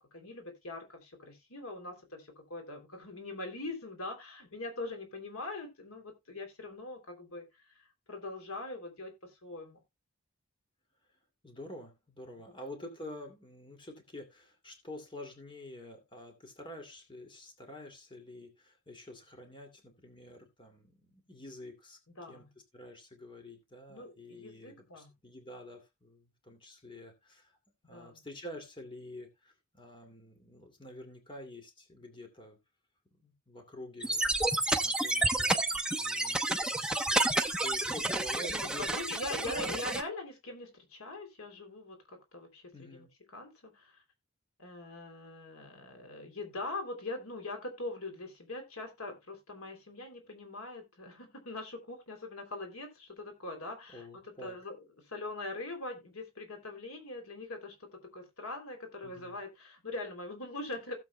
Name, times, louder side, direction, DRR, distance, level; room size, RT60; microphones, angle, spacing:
voice 1, 0.1-7.4 7.7-9.8 22.1-22.5 23.9-25.1 27.9-28.2 38.5-43.1 43.3-44.0 44.6-60.9, left 2 dB, 85° left, 3.1 m, -42 dB
voice 2, 11.4-22.0 22.3-22.4 22.7-27.6 27.9-32.6 33.2-38.9 39.5-39.8 42.7-43.1 53.9-54.6 59.0-59.4, left 1 dB, 25° left, 2.4 m, -48 dB
sound 1, 34.0-40.0, right 2 dB, 5° right, 0.8 m, -30 dB
16.5 x 7.5 x 2.2 m
head